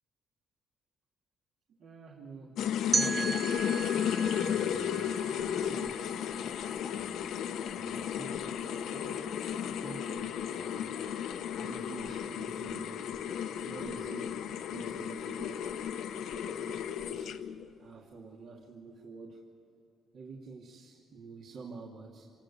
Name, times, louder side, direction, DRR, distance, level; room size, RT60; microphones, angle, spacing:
voice 1, 1.8-3.5 4.3-6.2 6.9-7.2 7.7-11.0 11.6-13.1 13.5-15.7 16.4-17.4 17.8-19.5 20.1-22.3, right 4 dB, 65° right, -2 dB, 2.7 m, -48 dB
sound 1, 2.6-17.7, left 8 dB, 85° left, 1.1 m, -34 dB
sound 2, 2.9-5.9, right 4 dB, 25° right, 0.8 m, -35 dB
28.0 x 18.0 x 8.7 m, 2.8 s
cardioid pair, 90°, 0 cm